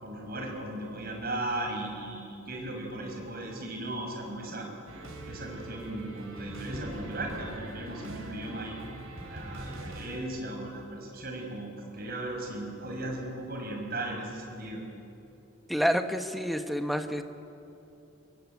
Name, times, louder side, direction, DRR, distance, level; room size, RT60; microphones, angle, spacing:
voice 1, 0.0-4.7 4.9-14.8, right 1 dB, 45° right, 1 dB, 5.7 m, -37 dB
sound 1, 4.9-10.2, right 1 dB, 90° right, 6.4 m, -42 dB
voice 2, 15.7-17.2, equal, ahead, 7 dB, 1.1 m, -28 dB
25.0 x 24.0 x 9.5 m, 2.8 s
head